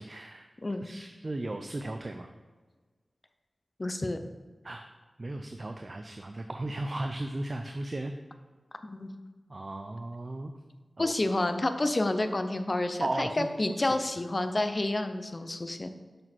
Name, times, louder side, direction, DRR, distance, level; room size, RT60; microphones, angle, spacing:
voice 1, 0.0-0.5 0.8-2.3 4.6-4.9 5.2-8.1 9.5-10.5 11.0-11.1 13.0-13.5 13.8-13.9, right 2 dB, 40° right, 6 dB, 0.5 m, -36 dB
voice 2, 3.8-4.2 8.8-9.1 11.0-15.9, left 2 dB, 35° left, 8 dB, 0.6 m, -29 dB
6.5 x 6.2 x 4.4 m, 1.4 s
wide cardioid pair, 75°, 0 cm